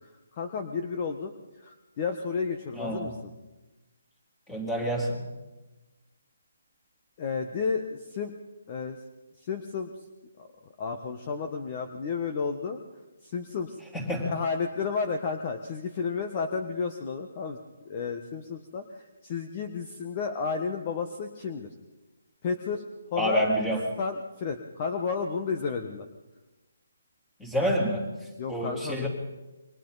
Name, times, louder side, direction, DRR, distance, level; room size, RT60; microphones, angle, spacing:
voice 1, 0.0-3.3 7.2-8.3 8.7-9.0 9.4-9.9 10.4-10.5 10.8-12.8 13.2-13.8 14.2-17.6 17.8-21.7 22.4-23.4 24.0-26.1 28.4-29.1, left 5 dB, 30° left, 5 dB, 1.3 m, -32 dB
voice 2, 2.8-3.1 4.5-5.2 13.9-14.3 23.2-23.8 27.4-28.0 28.5-29.1, equal, 5° left, 0 dB, 3.4 m, -27 dB
29.0 x 24.0 x 4.1 m, 1.1 s
hypercardioid pair, 165°, 0 cm